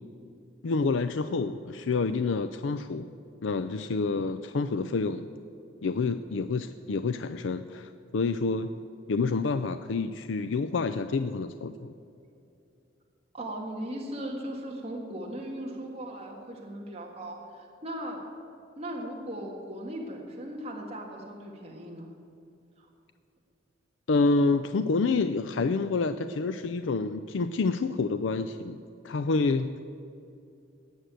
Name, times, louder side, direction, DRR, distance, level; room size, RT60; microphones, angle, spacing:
voice 1, 0.6-3.1 3.4-5.3 5.8-8.7 9.1-11.9 24.1-28.8 29.0-29.7, left 4 dB, 80° left, 10 dB, 0.5 m, -28 dB
voice 2, 13.3-18.2 18.8-22.1 22.8-22.9, right 1 dB, 35° right, -1 dB, 1.8 m, -38 dB
18.0 x 6.5 x 9.1 m, 2.6 s
head